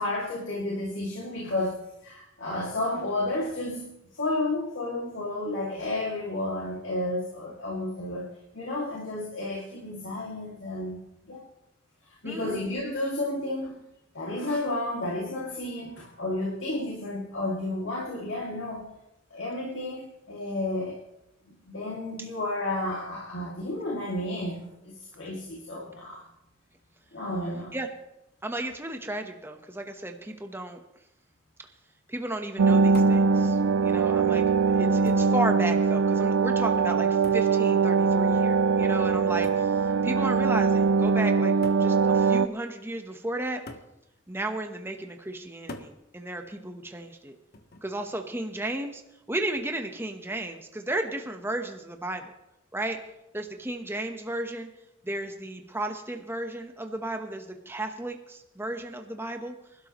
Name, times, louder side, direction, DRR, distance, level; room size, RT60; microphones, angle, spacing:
voice 1, 0.0-8.3 8.5-11.4 12.1-13.9 14.1-18.9 19.3-21.0 21.7-26.2 27.1-27.8, left 2 dB, 70° left, -4 dB, 2.5 m, -32 dB
voice 2, 12.2-12.6 22.2-22.3 27.7-27.9 28.4-30.8 31.6-31.7 32.1-43.6 44.3-47.3 47.8-49.0 49.3-52.3 52.7-53.0 53.3-54.7 55.0-59.5, right 1 dB, 10° right, 4 dB, 1.0 m, -34 dB
sound 1, 32.6-42.5, right 5 dB, 85° right, 0.4 m, -22 dB
sound 2, 32.9-33.3 34.3-34.4 35.1-35.4 37.2-37.6 39.4-39.7 40.8-40.9 41.6-41.9 43.7-44.0 45.7-46.0 47.5-47.9, left 2 dB, 55° left, 1.1 m, -43 dB
25.5 x 12.0 x 3.1 m, 0.86 s
head